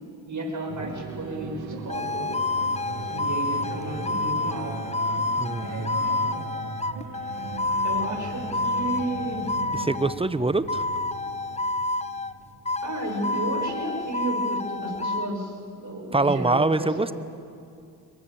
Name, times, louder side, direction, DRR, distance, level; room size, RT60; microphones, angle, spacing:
voice 1, 0.3-2.3 3.1-4.8 5.5-6.6 7.8-9.5 12.8-17.0, right 2 dB, 40° right, 1 dB, 7.2 m, -33 dB
sound 1, 0.7-14.3, right 4 dB, 80° right, 1.9 m, -39 dB
sound 2, 1.9-10.2 10.7-12.4 12.7-15.3, left 3 dB, 15° left, 0.8 m, -29 dB
voice 2, 5.4-5.9 9.7-10.8 16.1-17.1, right 2 dB, 10° right, 14 dB, 1.1 m, -24 dB
24.5 x 22.5 x 7.3 m, 2.5 s
hypercardioid pair, 45°, 44 cm